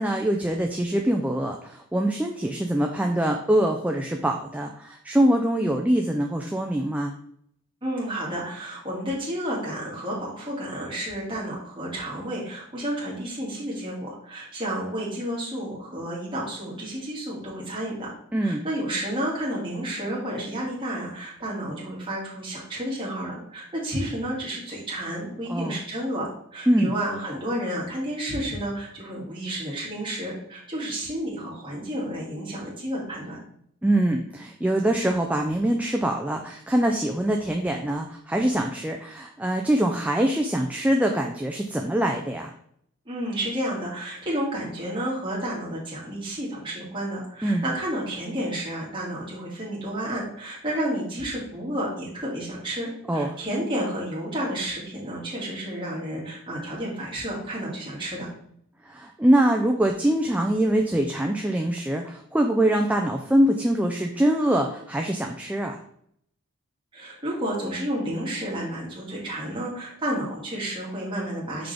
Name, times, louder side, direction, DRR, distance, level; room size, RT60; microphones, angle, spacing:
voice 1, 0.0-7.1 18.3-18.6 25.5-25.8 26.7-26.9 33.8-42.5 47.4-47.6 53.1-53.4 58.9-65.8, right 1 dB, 5° right, 2 dB, 0.4 m, -24 dB
voice 2, 7.8-18.1 18.4-33.4 43.1-58.3 66.9-71.7, right 1 dB, 25° right, -5 dB, 2.2 m, -31 dB
5.9 x 5.0 x 3.4 m, 0.69 s
head